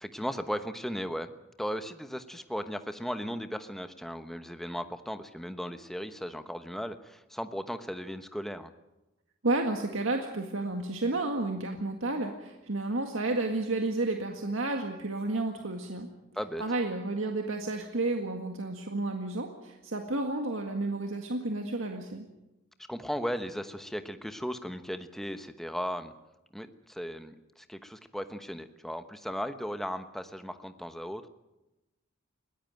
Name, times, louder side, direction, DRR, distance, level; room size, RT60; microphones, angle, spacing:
voice 1, 0.0-8.7 16.3-16.6 22.9-26.1 26.5-31.3, equal, ahead, 9 dB, 1.0 m, -36 dB
voice 2, 9.4-16.1 16.6-22.2, right 2 dB, 80° right, 3 dB, 1.9 m, -31 dB
21.5 x 17.0 x 9.2 m, 0.97 s
head